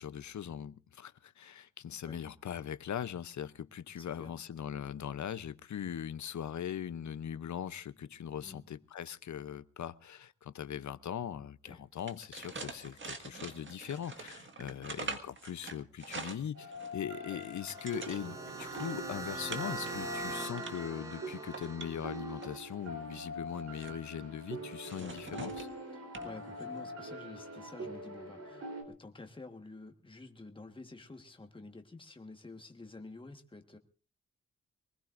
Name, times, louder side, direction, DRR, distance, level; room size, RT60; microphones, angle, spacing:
voice 1, 0.0-25.7, left 9 dB, 70° left, 0.7 m, -40 dB
voice 2, 4.0-4.4 8.4-8.6 11.6-11.8 14.6-14.9 17.3-17.4 20.9-21.0 25.0-25.2 25.9-33.8, left 2 dB, 15° left, 1.4 m, -50 dB
sound 1, 12.0-17.0 17.4-19.0 19.5-19.9 20.3-20.9 21.4-22.7 23.3-24.0 24.8-25.7 26.1-26.3 26.6-26.8, right 3 dB, 40° right, 1.7 m, -45 dB
sound 2, 16.5-28.8, equal, 55° right, 3.8 m, -44 dB
sound 3, 17.5-22.6, right 3 dB, 10° right, 1.0 m, -42 dB
24.0 x 19.5 x 2.5 m
wide cardioid pair, 180°, 30 cm